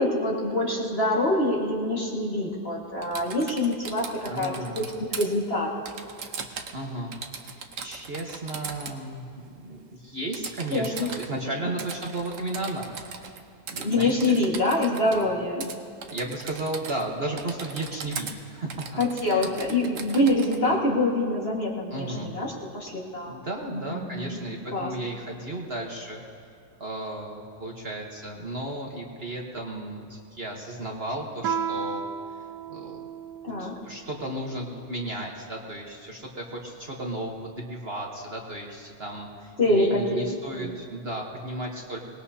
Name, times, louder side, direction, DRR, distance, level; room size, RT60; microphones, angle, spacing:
voice 1, 0.0-5.7 10.7-11.1 13.8-15.7 19.0-23.4 23.7-24.4 24.7-24.9 33.4-33.7 39.6-40.0 40.6-40.7, left 1 dB, 35° left, -3 dB, 2.1 m, -25 dB
Typing, 3.0-5.3 5.9-6.8 7.1-9.0 10.3-11.3 11.8-13.4 13.7-15.2 15.6-15.8 16.0-17.1 17.4-18.3 18.7-20.6, right 5 dB, 55° right, 1.2 m, -39 dB
voice 2, 4.3-4.8 6.7-7.1 7.4-12.9 13.7-14.4 15.2-15.3 16.1-18.8 19.2-19.5 20.6-20.8 21.9-22.3 23.2-26.2 26.8-32.0 32.3-32.4 32.7-33.0 33.6-42.0, right 1 dB, 40° right, -1 dB, 1.4 m, -34 dB
Guitar, 31.4-33.9, right 7 dB, 75° right, 1.4 m, -33 dB
24.5 x 19.5 x 2.8 m, 2.3 s
omnidirectional pair, 1.8 m